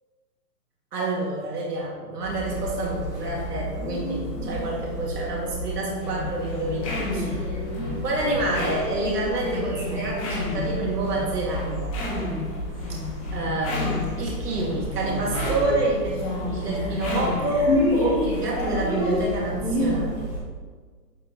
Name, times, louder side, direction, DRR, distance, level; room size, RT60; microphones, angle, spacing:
voice 1, 0.9-7.5 8.0-12.0 12.9-13.0 13.3-20.3, right 2 dB, 75° right, -3 dB, 2.7 m, -28 dB
sound 1, 2.2-20.4, right 1 dB, 5° right, 1.0 m, -33 dB
sound 2, 6.0-20.0, left 2 dB, 20° left, 1.9 m, -30 dB
11.0 x 7.0 x 3.2 m, 1.5 s
hypercardioid pair, 175°, 48 cm